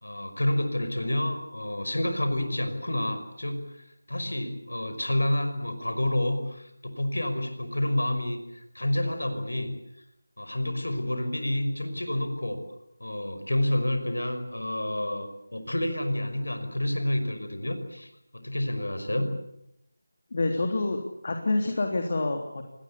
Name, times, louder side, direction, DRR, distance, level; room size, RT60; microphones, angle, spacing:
voice 1, 0.0-9.7 10.4-12.6 13.0-19.3, left 1 dB, 90° left, 8 dB, 5.5 m, -29 dB
voice 2, 20.3-22.6, left 2 dB, 45° left, 4 dB, 3.4 m, -27 dB
27.0 x 20.0 x 8.5 m, 0.81 s
figure-of-eight pair, 170°, 0 cm